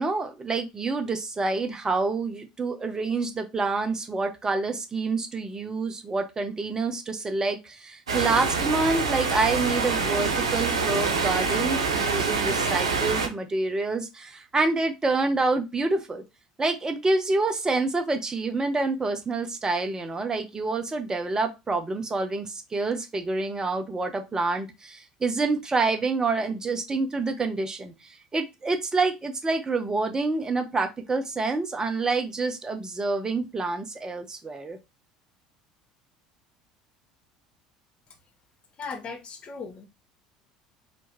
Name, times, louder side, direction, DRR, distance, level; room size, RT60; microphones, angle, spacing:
voice 1, 0.0-16.2 16.6-27.9 28.3-34.8, right 3 dB, 20° right, 6 dB, 1.1 m, -27 dB
sound 1, 8.1-13.3, right 4 dB, 85° right, 0.8 m, -26 dB
voice 2, 38.8-39.8, left 4 dB, 40° left, 4 dB, 1.3 m, -37 dB
4.3 x 3.0 x 3.0 m, 0.24 s
hypercardioid pair, 70°, 3 cm